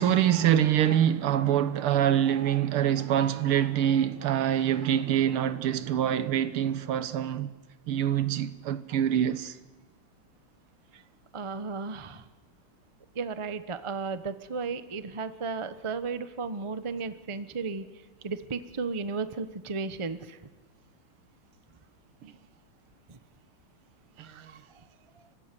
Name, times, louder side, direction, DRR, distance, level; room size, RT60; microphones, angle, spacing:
voice 1, 0.0-7.5 7.9-9.6 22.2-22.3 24.2-24.5, right 10 dB, 90° right, 1.9 m, -25 dB
voice 2, 11.3-12.2 13.1-17.9 18.2-20.4 23.1-23.2 24.3-24.6, right 4 dB, 35° right, 0.5 m, -34 dB
28.5 x 16.0 x 9.8 m
omnidirectional pair, 2.3 m